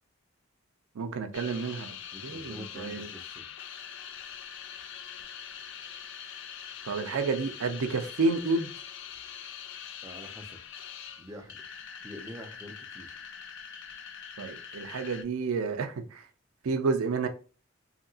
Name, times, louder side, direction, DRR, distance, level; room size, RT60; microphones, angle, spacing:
voice 1, 1.0-2.0 2.2-3.1 6.8-8.7 14.4-16.2 16.6-17.3, right 4 dB, 85° right, 0.5 m, -30 dB
sound 1, 1.3-15.2, left 8 dB, 60° left, 0.3 m, -43 dB
voice 2, 2.1-3.4 10.0-10.6 11.2-11.6 12.0-13.2, equal, 15° right, 0.4 m, -45 dB
2.8 x 2.7 x 2.6 m
head